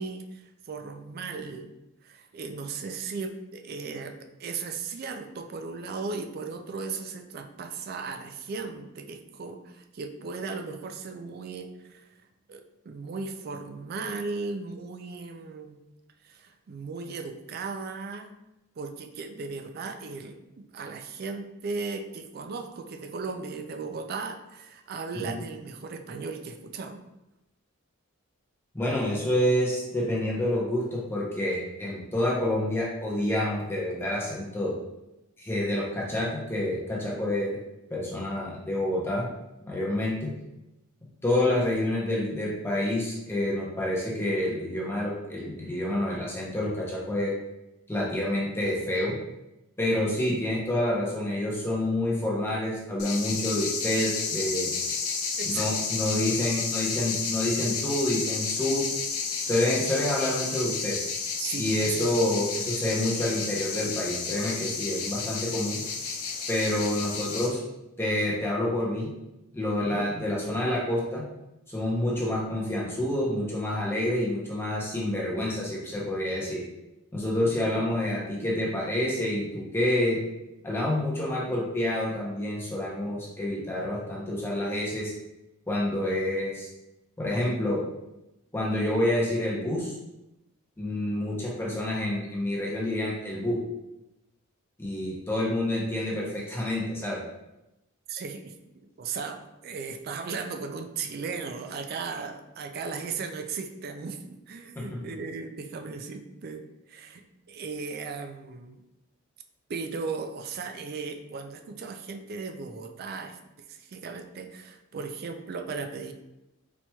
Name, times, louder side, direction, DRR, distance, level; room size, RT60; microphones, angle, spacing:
voice 1, 0.0-1.7 2.0-4.1 4.4-12.1 12.5-15.8 16.2-18.3 18.8-27.0 55.4-55.7 61.4-62.1 62.8-62.9 69.8-70.1 77.4-77.8 98.1-98.5 99.0-104.2 104.5-107.2 107.5-108.8 109.7-113.4 113.7-116.1, right 4 dB, 45° right, 7 dB, 0.3 m, -36 dB
voice 2, 28.7-34.8 35.4-37.6 37.9-39.3 39.7-40.3 41.2-47.3 47.9-49.1 49.8-54.7 55.4-58.9 59.4-61.0 61.6-65.8 66.5-67.6 68.0-69.1 69.5-71.2 71.7-76.6 77.1-80.2 80.6-85.1 85.7-86.7 87.2-87.8 88.5-89.9 90.8-93.6 94.8-97.2 104.8-105.0, left 1 dB, 10° left, -4 dB, 0.6 m, -28 dB
sound 1, 53.0-67.5, left 5 dB, 85° left, 0.6 m, -31 dB
4.2 x 2.9 x 2.2 m, 0.94 s
head